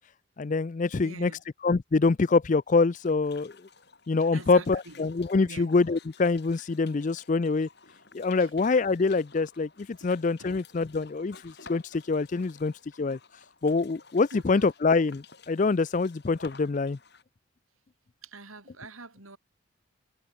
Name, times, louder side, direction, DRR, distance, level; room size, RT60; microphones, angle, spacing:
voice 1, 0.4-1.3 1.6-3.5 4.1-7.7 8.1-12.7 13.0-13.2 13.6-17.0, left 4 dB, 35° left, 0.4 m, -25 dB
voice 2, 1.0-1.4 4.3-5.0 5.5-5.7 8.4-8.5 10.0-10.1 10.4-10.6 14.3-14.7 18.2-19.4, right 3 dB, 85° right, 4.9 m, -45 dB
sound 1, 2.9-17.2, left 4 dB, 50° left, 5.2 m, -54 dB
head